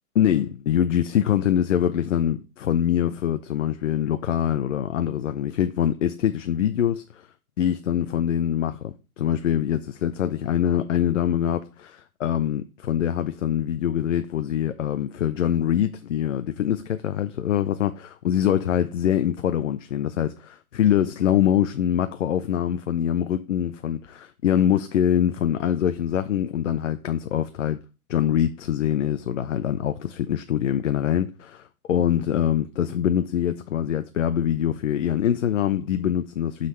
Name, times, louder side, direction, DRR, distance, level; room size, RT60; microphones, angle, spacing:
voice 1, 0.1-7.0 7.6-27.8 28.1-36.7, left 10 dB, 55° left, 0.6 m, -24 dB
12.0 x 4.0 x 3.2 m
hypercardioid pair, 145°, 45 cm